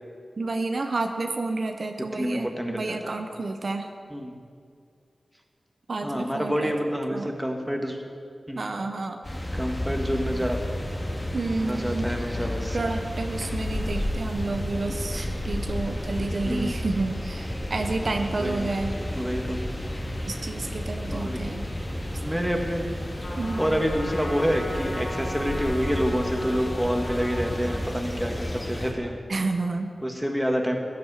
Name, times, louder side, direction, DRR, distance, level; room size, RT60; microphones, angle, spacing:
voice 1, 0.4-3.9 5.9-6.7 7.1-7.3 8.6-9.2 11.3-12.1 12.7-19.0 20.2-21.7 23.4-23.8 29.3-29.9, right 3 dB, 65° right, 5 dB, 0.8 m, -30 dB
voice 2, 2.1-3.1 4.1-4.3 6.0-8.0 8.5-8.6 9.5-10.6 11.6-12.8 15.1-15.3 16.4-16.8 18.3-18.7 19.1-19.6 21.1-21.6 22.2-22.9 23.6-29.2 30.0-30.8, equal, ahead, 2 dB, 1.7 m, -28 dB
sound 1, 9.2-28.9, left 1 dB, 20° left, 2.1 m, -32 dB
Trumpet, 23.2-27.9, left 1 dB, 65° left, 2.4 m, -38 dB
14.0 x 11.0 x 4.9 m, 2.3 s
wide cardioid pair, 60°, 0 cm